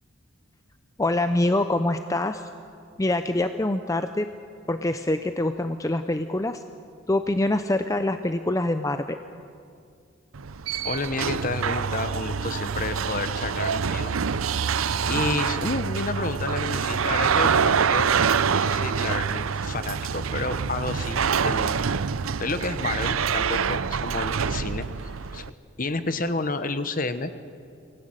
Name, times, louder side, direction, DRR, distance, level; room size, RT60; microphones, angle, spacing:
voice 1, 1.0-2.4 3.0-4.3 4.7-6.6 7.1-9.2, left 1 dB, 15° left, 9 dB, 0.5 m, -25 dB
sound 1, 10.3-25.5, right 6 dB, 80° right, 0.6 m, -26 dB
voice 2, 10.8-14.1 15.1-18.1 18.5-21.8 22.4-25.4 25.8-27.3, left 3 dB, 40° left, 11 dB, 1.1 m, -30 dB
24.0 x 17.0 x 9.0 m, 2.4 s
head